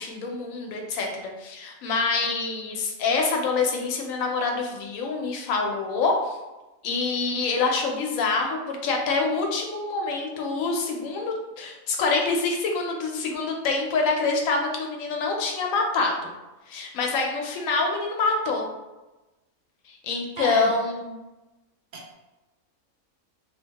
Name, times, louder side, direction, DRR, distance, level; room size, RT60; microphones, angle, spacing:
voice 1, 0.0-6.4 6.8-16.3 16.7-18.7 19.9-21.2, left 4 dB, 75° left, 1 dB, 1.0 m, -26 dB
voice 2, 20.4-20.7 21.9-22.1, right 3 dB, 85° right, -2 dB, 0.4 m, -33 dB
2.7 x 2.1 x 2.8 m, 1.1 s
omnidirectional pair, 1.4 m